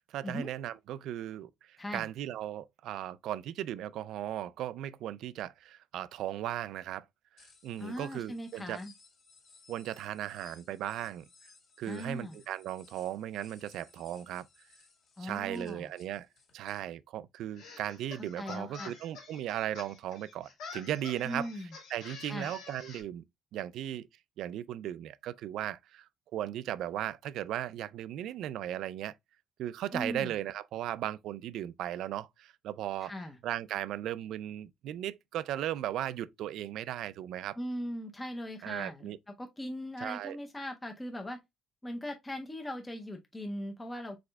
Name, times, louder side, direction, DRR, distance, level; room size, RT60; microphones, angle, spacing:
voice 1, 0.1-7.1 7.6-8.8 9.7-11.2 11.8-14.5 15.2-16.3 16.5-21.5 21.9-23.2 23.5-24.1 24.4-29.2 29.6-33.1 33.4-37.6 38.6-39.2 40.0-40.4, right 12 dB, 75° right, 0.3 m, -37 dB
voice 2, 1.8-2.1 7.8-8.9 11.9-12.4 15.2-15.9 18.2-19.0 21.2-21.7 22.2-22.5 29.9-30.3 33.0-33.4 37.6-39.1 39.4-41.4 41.8-44.2, equal, 10° left, 0.6 m, -39 dB
sound 1, 7.4-16.8, left 4 dB, 50° left, 1.8 m, -61 dB
sound 2, 17.5-23.0, left 4 dB, 90° left, 2.6 m, -48 dB
4.8 x 4.2 x 2.2 m
cardioid pair, 150°, 0 cm